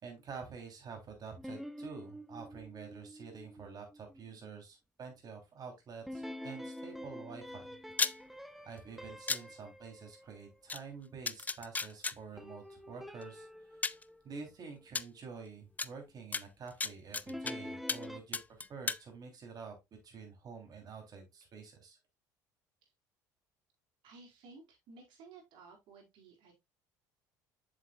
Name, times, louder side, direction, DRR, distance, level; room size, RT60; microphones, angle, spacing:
voice 1, 0.0-7.8 8.6-13.5 14.2-19.8 20.0-22.0, right 5 dB, 45° right, 3 dB, 3.2 m, -48 dB
sound 1, 1.4-4.5 6.1-10.5 12.4-15.0 17.3-18.2, left 1 dB, ahead, 0.7 m, -47 dB
sound 2, 7.9-8.1 9.3-9.4 10.7-10.8 11.3-12.1 13.2-13.3 13.8-14.0 14.9-15.0 15.8-15.9 16.3-17.5 17.9-18.1 18.3-19.0, left 4 dB, 15° left, 0.3 m, -34 dB
voice 2, 24.0-26.5, right 4 dB, 65° right, 0 dB, 3.9 m, -55 dB
7.2 x 6.7 x 2.3 m, 0.21 s
hypercardioid pair, 70°, 9 cm